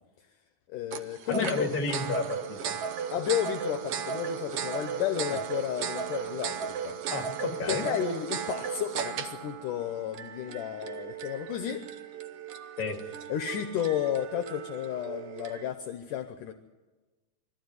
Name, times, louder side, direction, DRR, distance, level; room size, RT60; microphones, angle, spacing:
voice 1, 0.7-1.7 3.1-6.9 7.7-11.9 13.3-16.5, left 11 dB, 70° left, 8 dB, 2.1 m, -32 dB
sound 1, 0.9-15.7, right 7 dB, 80° right, 1.3 m, -36 dB
voice 2, 1.3-2.8 5.3-5.4 7.1-7.9 12.8-13.0, left 4 dB, 30° left, 2 dB, 2.2 m, -32 dB
22.5 x 14.5 x 9.4 m, 1.2 s
omnidirectional pair, 4.3 m